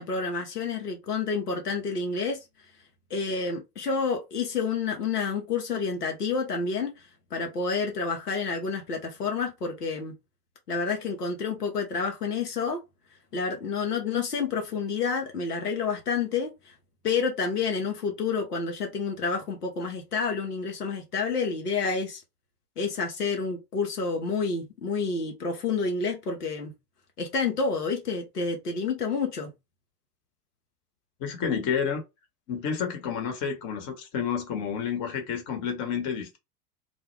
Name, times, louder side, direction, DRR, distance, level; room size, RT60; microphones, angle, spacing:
voice 1, 0.0-2.4 3.1-10.1 10.7-12.8 13.3-16.7 17.0-22.2 22.8-26.7 27.2-29.5, left 4 dB, 90° left, 0.6 m, -29 dB
voice 2, 31.2-32.0 32.5-36.4, left 7 dB, 40° left, 0.9 m, -30 dB
2.2 x 2.0 x 3.1 m
figure-of-eight pair, 80°, 46 cm